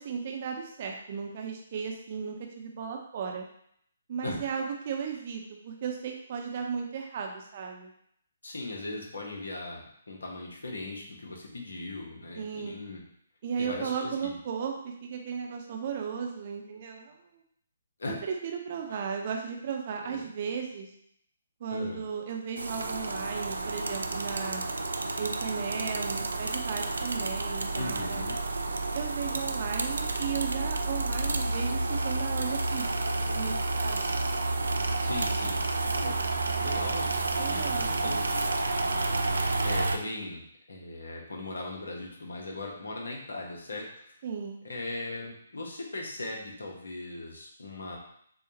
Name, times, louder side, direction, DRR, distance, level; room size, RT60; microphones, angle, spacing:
voice 1, 0.0-3.5 4.1-7.9 12.3-12.8 13.4-17.4 18.1-20.9 21.6-24.6 25.2-28.2 28.9-34.1 37.4-38.2 44.2-44.6, right 6 dB, 45° right, 1 dB, 0.8 m, -35 dB
voice 2, 8.4-13.0 13.6-14.4 18.0-18.2 18.9-19.0 20.0-20.3 21.7-22.0 27.7-28.4 35.0-36.2 36.6-37.1 37.5-38.4 38.8-38.9 39.6-43.9 44.6-48.0, left 2 dB, 70° left, -1 dB, 1.2 m, -38 dB
sound 1, 22.6-40.0, right 2 dB, 75° right, 0.4 m, -30 dB
6.5 x 2.4 x 2.9 m, 0.69 s
figure-of-eight pair, 135°, 0 cm